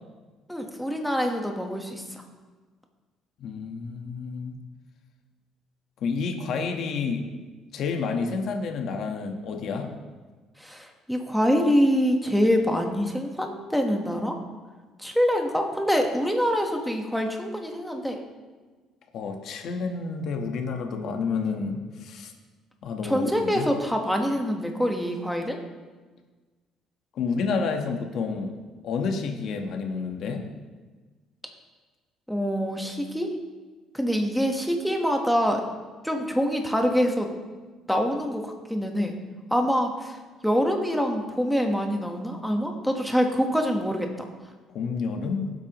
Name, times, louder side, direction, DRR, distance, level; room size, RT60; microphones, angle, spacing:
voice 1, 0.5-2.2 10.6-14.3 15.0-18.2 23.0-25.6 32.3-33.3 33.9-35.6 36.0-37.3 37.9-39.1 39.5-40.2 40.4-44.1, equal, ahead, 2 dB, 1.3 m, -25 dB
voice 2, 3.4-4.6 6.0-7.2 7.7-10.0 19.1-22.3 22.8-23.7 27.1-28.5 28.8-30.5 44.7-45.5, left 5 dB, 60° left, 4 dB, 1.2 m, -29 dB
19.0 x 8.1 x 3.0 m, 1.3 s
cardioid pair, 135°, 0 cm